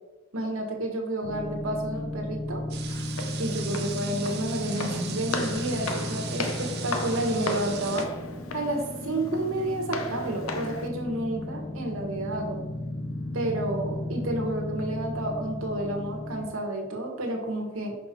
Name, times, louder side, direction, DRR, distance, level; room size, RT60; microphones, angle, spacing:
voice 1, 0.3-2.6 3.4-8.1 8.5-12.6 13.3-18.0, right 1 dB, 75° right, 2 dB, 1.5 m, -30 dB
sound 1, 1.2-16.5, left 1 dB, 35° left, 0.9 m, -35 dB
sound 2, 2.7-8.0, right 8 dB, 50° right, 0.7 m, -39 dB
Walk footsteps, 2.9-10.9, left 2 dB, 85° left, 0.7 m, -36 dB
5.9 x 5.1 x 4.6 m, 1.1 s
head